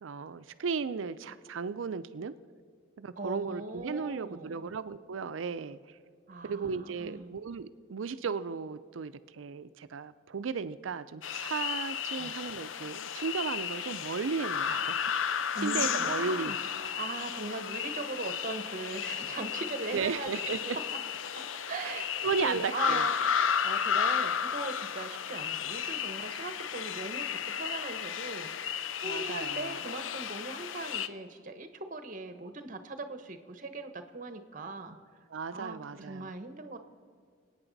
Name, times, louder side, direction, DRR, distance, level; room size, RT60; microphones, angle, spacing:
voice 1, 0.0-2.3 3.0-5.8 6.4-15.0 15.6-16.6 19.9-20.8 21.8-23.1 29.0-29.8 35.3-36.4, right 5 dB, 85° right, 14 dB, 0.5 m, -35 dB
voice 2, 3.2-4.7 6.3-7.4 12.1-12.4 15.5-20.5 21.4-28.8 29.0-35.0 35.5-36.8, right 3 dB, 45° right, 8 dB, 1.0 m, -40 dB
sound 1, 11.2-31.1, left 7 dB, 85° left, 0.5 m, -33 dB
25.0 x 8.9 x 4.0 m, 2.1 s
head